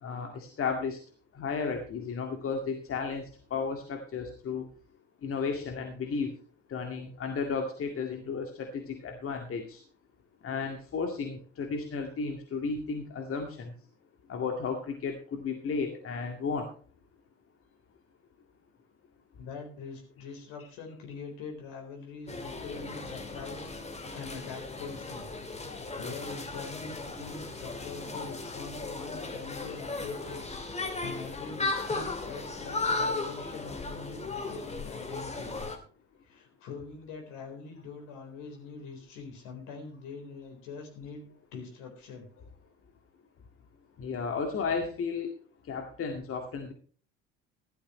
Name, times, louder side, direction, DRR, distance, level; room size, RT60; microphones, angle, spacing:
voice 1, 0.0-1.0 1.3-4.7 5.2-6.3 6.7-9.8 10.4-13.7 14.3-16.7 44.0-45.3 45.7-46.7, left 5 dB, 35° left, 3 dB, 2.1 m, -33 dB
voice 2, 19.4-25.3 25.6-35.7 36.2-42.3, left 5 dB, 60° left, 3 dB, 4.2 m, -43 dB
sound 1, 22.3-35.8, left 3 dB, 20° left, 2.6 m, -36 dB
15.5 x 12.5 x 3.1 m, 0.41 s
figure-of-eight pair, 60°, 36 cm